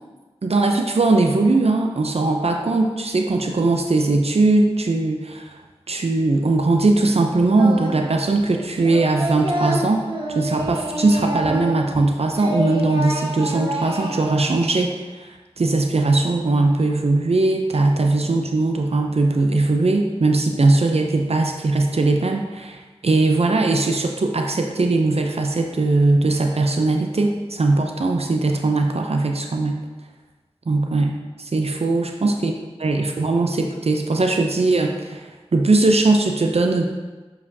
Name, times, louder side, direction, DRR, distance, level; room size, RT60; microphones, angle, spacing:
voice 1, 0.4-5.6 5.9-10.0 10.3-29.8 30.7-32.5 32.8-36.8, right 2 dB, 70° right, 2 dB, 0.5 m, -20 dB
Singing, 7.6-8.1 8.4-12.0 12.3-14.4, right 1 dB, 50° right, 1.1 m, -28 dB
7.2 x 4.8 x 2.7 m, 1.3 s
wide cardioid pair, 55°, 11 cm